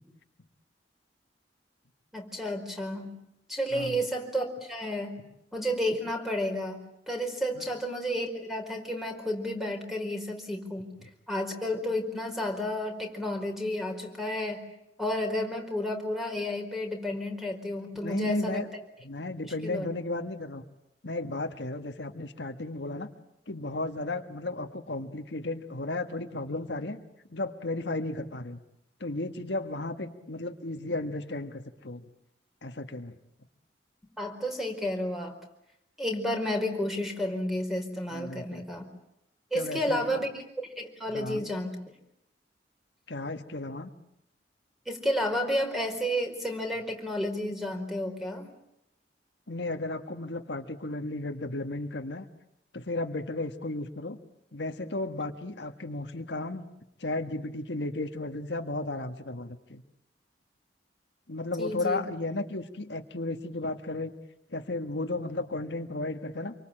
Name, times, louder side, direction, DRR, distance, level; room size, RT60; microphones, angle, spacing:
voice 1, 2.1-3.2 3.5-5.2 5.5-6.8 7.1-10.9 11.3-14.7 15.0-18.6 19.4-19.9 34.2-35.3 36.0-38.8 39.5-40.4 40.8-41.8 44.9-48.5 61.6-62.0, equal, ahead, 3 dB, 4.8 m, -31 dB
voice 2, 17.9-18.6 19.0-20.6 21.0-23.1 23.5-27.0 27.3-28.6 29.0-32.0 32.6-33.1 38.1-38.6 39.5-40.3 41.1-41.5 43.1-43.9 49.5-52.2 52.7-54.2 54.5-56.7 57.0-59.8 61.3-64.1 64.5-66.5, left 2 dB, 75° left, 6 dB, 1.6 m, -34 dB
27.0 x 24.5 x 9.0 m, 0.81 s
head